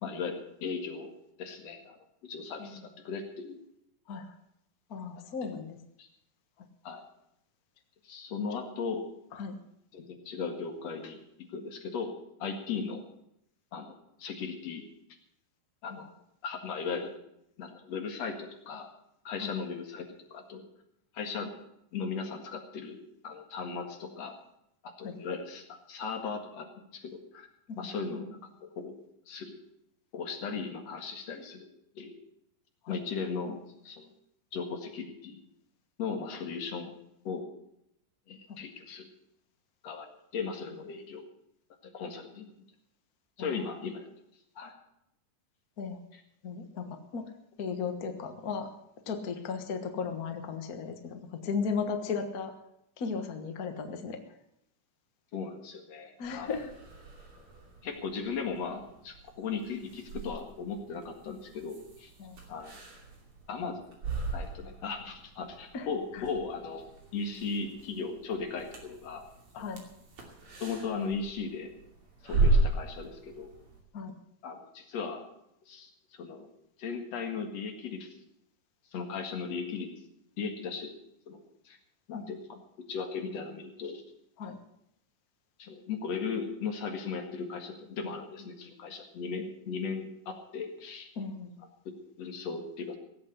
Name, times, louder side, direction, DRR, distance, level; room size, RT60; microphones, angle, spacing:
voice 1, 0.0-1.1 1.4-2.0 2.2-3.6 5.4-5.5 6.0-6.1 6.8-7.0 8.0-9.1 9.9-11.2 11.5-12.1 12.4-13.0 13.7-14.8 15.8-16.1 16.4-17.1 17.6-18.9 19.2-20.7 21.1-21.5 21.9-24.3 25.0-27.5 27.8-29.0 29.3-29.6 30.1-31.7 32.0-32.1 32.9-34.1 34.5-35.4 36.0-36.9 37.2-37.5 38.3-39.1 39.8-41.3 41.8-42.5 43.4-44.1 44.6-44.7 46.1-46.2 55.3-56.5 57.8-62.1 62.5-62.7 63.5-63.8 64.3-69.2 69.5-69.6 70.6-71.7 72.2-73.5 74.4-75.2 75.7-76.5 76.8-78.2 78.9-79.9 80.4-80.9 81.3-81.8 82.1-82.6 82.9-84.0 85.6-91.1 92.2-93.0, left 5 dB, 55° left, 4 dB, 2.8 m, -37 dB
voice 2, 4.9-5.8 9.3-9.5 15.9-16.0 19.4-19.5 25.0-25.1 27.7-27.9 32.8-33.0 43.4-43.7 45.8-46.0 46.4-47.2 47.6-48.7 49.1-52.5 53.0-54.2 56.2-56.7 62.2-62.4 65.7-65.9 66.1-66.2 69.6-69.8 73.9-74.1 82.1-82.3 84.4-84.6 91.2-91.6, left 5 dB, 80° left, 6 dB, 0.8 m, -36 dB
sound 1, 56.2-73.8, right 2 dB, 40° right, 3.3 m, -36 dB
17.0 x 8.2 x 8.0 m, 0.78 s
omnidirectional pair, 4.0 m